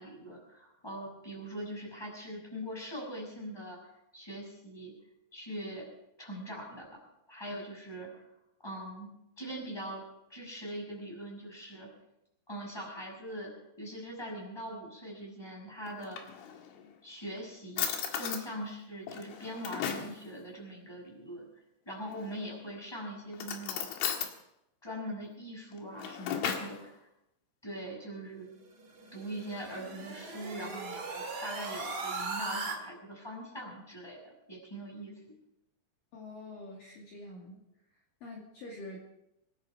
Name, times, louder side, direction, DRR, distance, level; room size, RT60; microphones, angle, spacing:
voice 1, 0.0-4.9 5.3-5.8 6.2-6.9 7.3-8.2 8.6-9.1 9.4-10.0 10.3-11.9 12.5-13.5 13.8-16.3 17.0-21.4 21.8-23.9 24.8-27.0 27.6-28.5 29.1-35.1, equal, 5° left, -2 dB, 6.0 m, -42 dB
Drawer open or close, 15.9-16.8 17.4-17.5 17.8-18.5 19.1-20.2 22.0-22.6 23.3-24.3 25.7-26.8, left 8 dB, 70° left, 4.0 m, -35 dB
sound 1, 28.8-32.7, right 3 dB, 60° right, 1.1 m, -38 dB
voice 2, 36.1-37.6 38.2-39.0, left 2 dB, 50° left, -2 dB, 3.5 m, -46 dB
26.0 x 11.5 x 4.8 m, 0.85 s
omnidirectional pair, 5.9 m